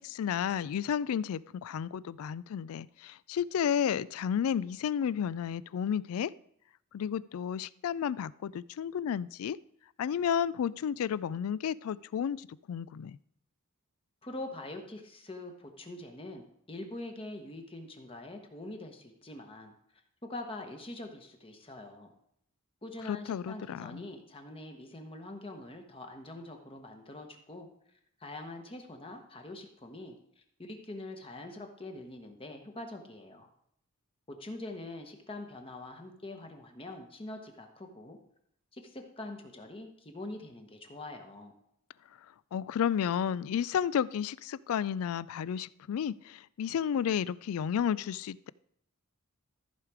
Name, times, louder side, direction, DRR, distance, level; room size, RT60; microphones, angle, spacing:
voice 1, 0.0-6.3 6.9-9.6 10.0-13.2 23.1-24.0 42.5-48.5, left 8 dB, 70° left, 21 dB, 0.3 m, -32 dB
voice 2, 14.2-19.7 20.2-22.1 22.8-27.7 28.2-33.5 34.3-38.2 38.7-41.5, left 2 dB, 25° left, 4 dB, 1.1 m, -44 dB
14.0 x 5.0 x 4.8 m, 0.71 s
head